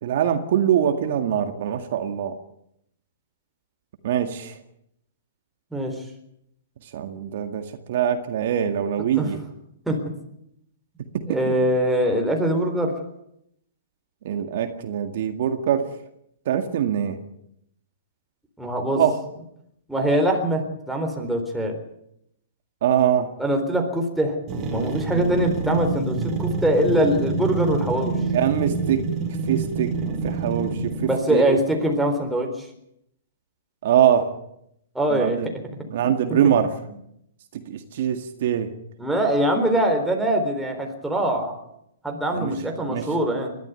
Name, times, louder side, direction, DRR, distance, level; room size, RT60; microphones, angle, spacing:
voice 1, 0.0-2.4 4.0-4.6 6.8-9.4 11.3-11.6 14.2-15.9 16.5-17.2 18.9-19.2 22.8-23.3 28.3-29.1 29.5-31.6 33.8-34.4 35.1-35.5 35.9-36.8 37.5-38.7 42.3-42.6 42.9-43.1, right 9 dB, 55° right, 7 dB, 2.0 m, -23 dB
voice 2, 11.3-12.9 18.6-19.0 19.9-21.8 23.4-24.4 24.7-28.2 31.0-32.5 34.9-35.4 36.3-36.4 39.0-41.5 42.0-43.6, right 1 dB, 5° right, 2 dB, 3.9 m, -23 dB
sound 1, 24.5-31.3, right 3 dB, 25° right, 4.5 m, -27 dB
21.5 x 13.0 x 9.2 m, 0.77 s
hypercardioid pair, 150°, 0 cm